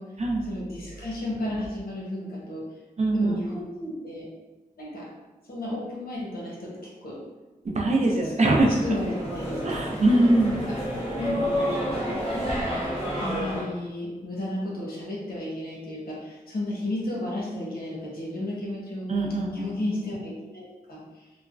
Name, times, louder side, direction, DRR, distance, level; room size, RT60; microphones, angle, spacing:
voice 1, 0.4-2.6 3.1-4.3 4.8-5.1 5.5-7.2 7.9-8.3 8.8-10.0 10.5-10.8 11.2-11.3 11.7-11.9 13.2-19.1 19.5-21.2, left 1 dB, 80° left, -5 dB, 0.8 m, -33 dB
voice 2, 3.0-3.5 7.6-8.8 9.6-10.6 19.1-19.8, right 2 dB, 50° right, 0 dB, 0.4 m, -22 dB
sound 1, 8.6-13.6, equal, 40° left, 1.1 m, -29 dB
3.1 x 2.1 x 2.4 m, 1.2 s
wide cardioid pair, 70°, 15 cm